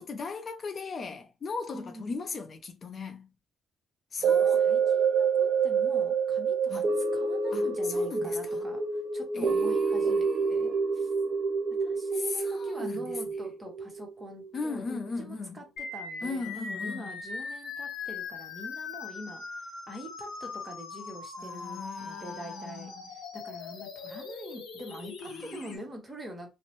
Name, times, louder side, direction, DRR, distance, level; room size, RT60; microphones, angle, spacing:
voice 1, 0.0-3.3 4.1-4.7 6.7-6.9 7.5-8.7 9.3-10.8 12.1-13.0 14.5-15.6 16.2-17.1 21.4-23.0 25.2-25.4, left 4 dB, 45° left, 0.5 m, -38 dB
voice 2, 1.7-2.2 4.2-11.1 11.8-19.4 19.9-26.5, equal, 20° right, 1.1 m, -44 dB
sound 1, 4.2-14.6 15.0-15.1, right 5 dB, 60° right, 0.7 m, -27 dB
sound 2, 15.8-25.8, left 4 dB, 90° left, 0.9 m, -40 dB
2.6 x 2.1 x 3.0 m
cardioid pair, 90°, 0 cm